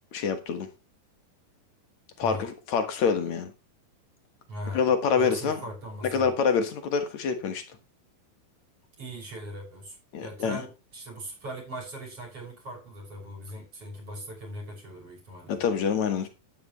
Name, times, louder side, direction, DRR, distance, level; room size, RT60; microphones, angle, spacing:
voice 1, 0.1-0.7 2.2-3.5 4.7-5.6 6.0-7.6 10.1-10.6 15.5-16.3, left 6 dB, 60° left, 2.3 m, -26 dB
voice 2, 4.5-4.9 5.2-6.3 9.0-15.6, right 1 dB, 35° right, 7.0 m, -40 dB
12.0 x 10.5 x 3.1 m
omnidirectional pair, 4.3 m